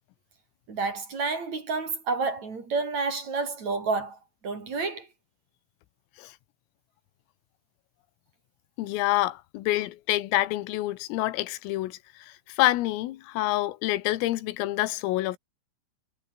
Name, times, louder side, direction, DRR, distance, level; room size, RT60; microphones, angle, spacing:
voice 1, 0.7-5.1, right 4 dB, 35° right, 4.9 m, -30 dB
voice 2, 8.8-12.0 12.5-15.4, left 16 dB, 90° left, 4.0 m, -27 dB
omnidirectional pair, 5.8 m